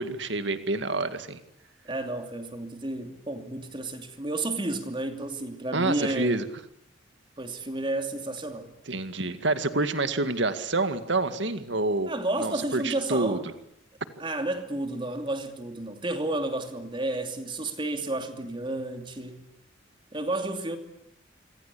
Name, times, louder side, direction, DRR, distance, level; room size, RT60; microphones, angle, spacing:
voice 1, 0.0-1.4 5.7-6.4 8.9-12.1 12.4-13.4, right 2 dB, 65° right, 2.1 m, -27 dB
voice 2, 1.8-6.4 7.4-8.7 12.1-13.5 14.2-19.4 20.1-20.8, right 2 dB, 25° right, 2.8 m, -31 dB
26.5 x 25.5 x 8.6 m
head